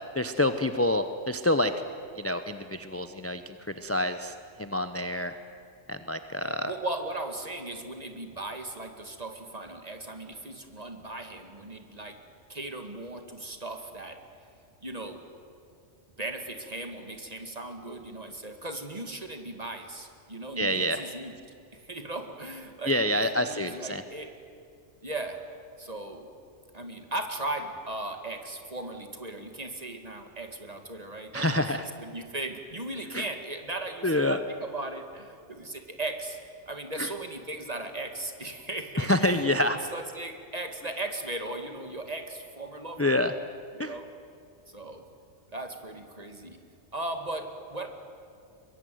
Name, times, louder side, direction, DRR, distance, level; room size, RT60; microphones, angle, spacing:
voice 1, 0.1-1.7 2.2-5.4 5.9-6.7 20.6-21.0 22.9-24.0 31.3-31.8 33.1-33.3 34.0-34.4 37.0-37.1 39.0-39.8 43.0-43.3 43.8-44.0, left 1 dB, 15° left, 9 dB, 0.7 m, -27 dB
voice 2, 6.4-12.2 12.5-14.2 14.8-15.2 16.2-21.3 21.7-24.3 25.0-25.4 25.8-26.3 26.7-36.4 36.7-39.4 39.9-43.2 43.7-44.1 44.7-45.0 45.5-46.6 46.9-47.9, right 2 dB, 35° right, 5 dB, 2.2 m, -37 dB
22.5 x 22.5 x 9.3 m, 2.4 s
omnidirectional pair, 1.2 m